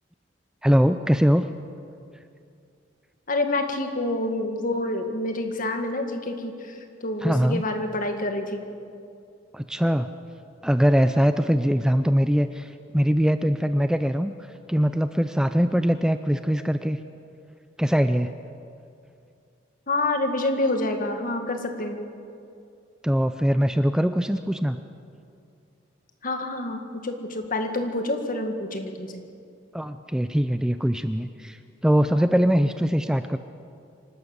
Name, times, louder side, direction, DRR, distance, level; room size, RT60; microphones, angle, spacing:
voice 1, 0.6-1.5 7.2-7.6 9.5-10.1 10.6-14.3 14.7-17.0 17.8-18.3 23.0-24.8 29.7-33.4, equal, 5° right, 9 dB, 0.5 m, -22 dB
voice 2, 3.3-8.6 19.9-22.0 26.2-29.1, left 2 dB, 45° left, 5 dB, 2.0 m, -27 dB
26.0 x 12.5 x 8.1 m, 2.5 s
head